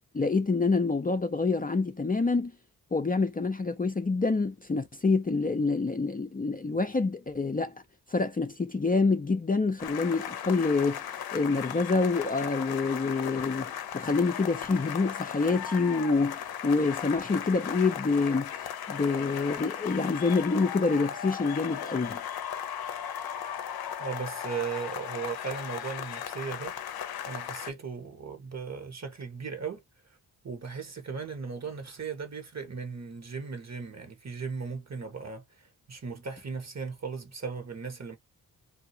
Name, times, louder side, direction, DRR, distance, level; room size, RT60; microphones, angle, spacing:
voice 1, 0.1-2.5 2.9-7.7 8.1-18.5 18.9-22.2, left 4 dB, 20° left, 0.6 m, -27 dB
sound 1, 9.8-27.7, left 9 dB, 70° left, 0.6 m, -37 dB
voice 2, 24.0-26.7 27.2-29.8 30.4-38.2, right 5 dB, 45° right, 1.3 m, -37 dB
2.8 x 2.4 x 2.8 m
cardioid pair, 45°, 38 cm